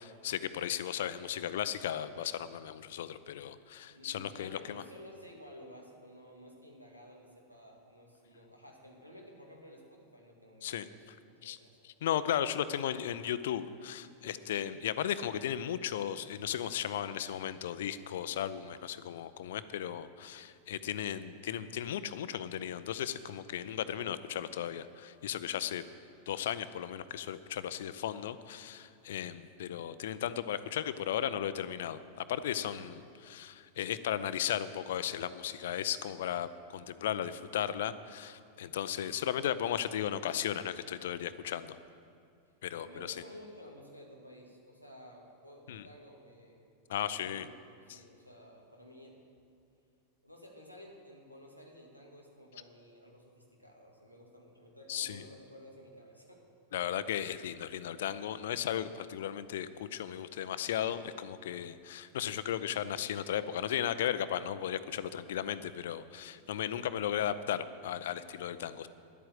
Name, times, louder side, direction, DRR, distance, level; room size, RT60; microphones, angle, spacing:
voice 1, 0.0-4.8 10.6-10.9 11.4-11.6 11.8-25.8 26.3-41.8 42.6-42.9 45.7-45.9 46.9-47.5 47.9-48.0 54.9-55.2 56.7-68.9, left 10 dB, 60° left, 14 dB, 0.5 m, -35 dB
voice 2, 3.9-11.8 42.8-47.6 47.9-49.2 50.2-56.4 66.5-66.6, equal, 90° right, 0 dB, 2.0 m, -53 dB
11.0 x 8.6 x 7.9 m, 2.4 s
figure-of-eight pair, 90°, 0 cm